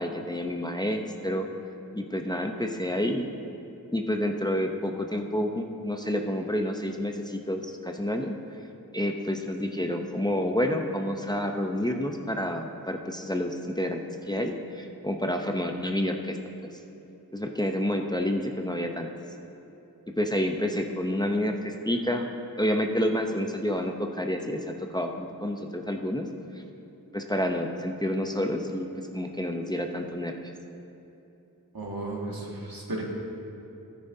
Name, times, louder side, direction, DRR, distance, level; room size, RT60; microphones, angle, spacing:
voice 1, 0.0-1.5 1.9-3.3 3.9-8.3 8.9-14.0 14.3-16.4 17.3-19.1 20.2-22.3 22.6-26.3 27.1-28.9 29.1-30.3, left 1 dB, 10° left, 3 dB, 0.7 m, -29 dB
voice 2, 31.7-33.0, right 2 dB, 75° right, -4 dB, 2.0 m, -34 dB
13.5 x 9.6 x 2.7 m, 2.9 s
wide cardioid pair, 40°, 37 cm